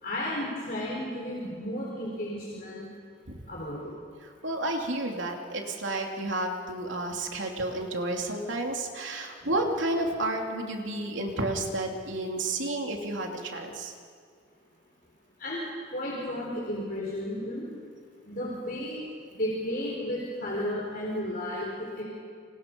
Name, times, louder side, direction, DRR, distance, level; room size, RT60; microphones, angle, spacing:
voice 1, 0.0-2.9 3.5-3.9 15.4-15.6 15.9-17.6 18.2-19.0 19.4-22.0, left 1 dB, 45° left, -4 dB, 4.3 m, -33 dB
voice 2, 4.4-13.9, right 2 dB, 75° right, 1 dB, 3.0 m, -31 dB
28.0 x 26.0 x 5.4 m, 2.2 s
head